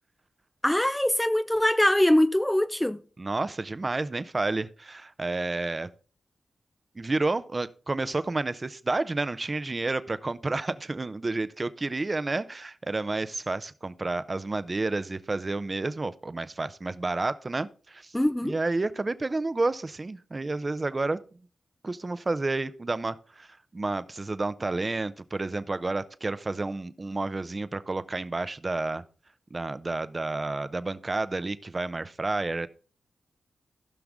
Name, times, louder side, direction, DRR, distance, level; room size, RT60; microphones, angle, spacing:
voice 1, 0.6-3.0 18.1-18.5, left 1 dB, 10° left, 0.4 m, -23 dB
voice 2, 3.2-5.9 7.0-18.1 18.4-21.2 21.8-29.0 29.5-32.7, right 2 dB, 40° right, 0.7 m, -30 dB
15.5 x 5.9 x 3.6 m
supercardioid pair, 40°, 0 cm